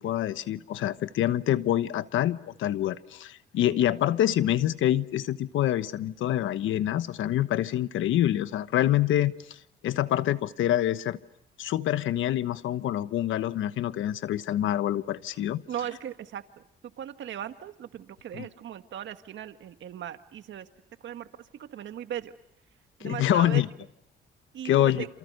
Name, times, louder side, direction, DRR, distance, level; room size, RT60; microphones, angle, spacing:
voice 1, 0.0-9.3 9.8-11.2 11.6-15.6 18.3-18.4 23.0-23.7 24.6-25.0, left 12 dB, 80° left, 1.2 m, -26 dB
voice 2, 15.7-20.7 21.0-22.3 23.0-23.6 24.5-25.1, right 10 dB, 70° right, 1.7 m, -38 dB
29.0 x 29.0 x 6.6 m
cardioid pair, 90°, 20 cm